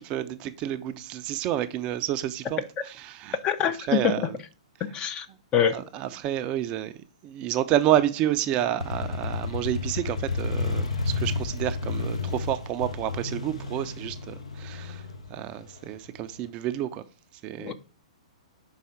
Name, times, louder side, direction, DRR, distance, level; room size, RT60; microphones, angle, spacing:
voice 1, 0.0-3.4 3.9-4.3 5.7-6.9 7.2-15.0 15.3-17.0 17.4-17.7, right 12 dB, 30° right, 0.4 m, -29 dB
voice 2, 3.4-4.1 4.9-5.3 5.5-5.8 17.6-17.7, left 8 dB, 25° left, 0.5 m, -24 dB
Bowed string instrument, 7.7-11.9, right 2 dB, 90° left, 2.5 m, -48 dB
Motorcycle, 8.8-16.4, left 3 dB, 70° left, 0.8 m, -31 dB
5.6 x 4.1 x 4.7 m
figure-of-eight pair, 110°, 3 cm